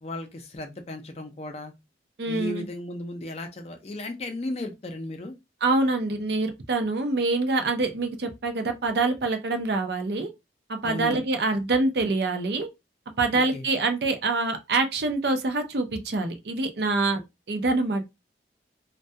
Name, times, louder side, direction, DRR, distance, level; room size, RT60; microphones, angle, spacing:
voice 1, 0.0-1.7 2.3-5.3 10.8-11.2 13.3-13.7, left 1 dB, 35° left, 0.4 m, -35 dB
voice 2, 2.2-2.7 5.6-10.3 10.7-12.7 13.2-17.2 17.5-18.1, right 3 dB, 65° right, 0.5 m, -25 dB
2.2 x 2.2 x 2.7 m
head